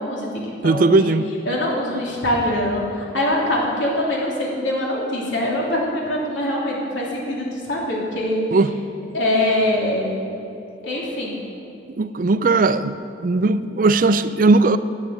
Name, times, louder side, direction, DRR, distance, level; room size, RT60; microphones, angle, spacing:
voice 1, 0.0-1.1 1.5-8.4 9.1-10.2 10.8-11.4, left 1 dB, 80° left, -3 dB, 3.0 m, -23 dB
voice 2, 0.6-1.3 8.5-8.7 12.0-13.0 13.2-14.8, right 3 dB, 45° right, 13 dB, 0.4 m, -17 dB
10.0 x 9.0 x 7.8 m, 2.7 s
head